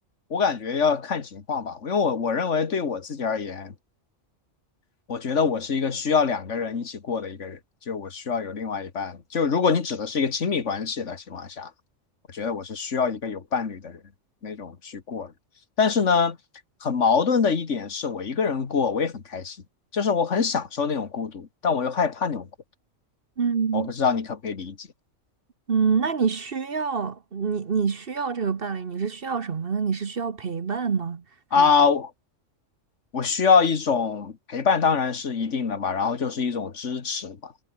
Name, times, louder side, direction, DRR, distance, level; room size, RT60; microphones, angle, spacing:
voice 1, 0.3-3.7 5.1-7.6 7.9-11.7 12.3-14.0 14.4-15.3 15.8-16.4 16.8-19.6 19.9-22.5 23.7-24.9 31.5-32.1 33.1-37.6, left 5 dB, 65° left, 2.1 m, -25 dB
voice 2, 23.4-23.9 25.7-31.2 31.5-31.7, right 6 dB, 50° right, 1.3 m, -26 dB
omnidirectional pair, 1.3 m